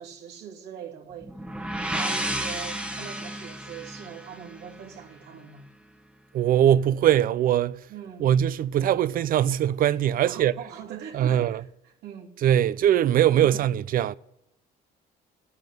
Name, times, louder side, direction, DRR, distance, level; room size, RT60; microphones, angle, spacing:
voice 1, 0.0-1.3 1.9-5.7 7.9-8.3 10.2-12.4 13.3-13.6, right 8 dB, 80° right, 2.9 m, -41 dB
sound 1, 1.2-5.0, right 1 dB, 5° right, 1.2 m, -32 dB
voice 2, 6.3-7.8 8.2-10.5 11.1-11.6 12.4-14.1, right 10 dB, 55° right, 0.6 m, -21 dB
14.0 x 9.7 x 9.3 m
cardioid pair, 110°, 17 cm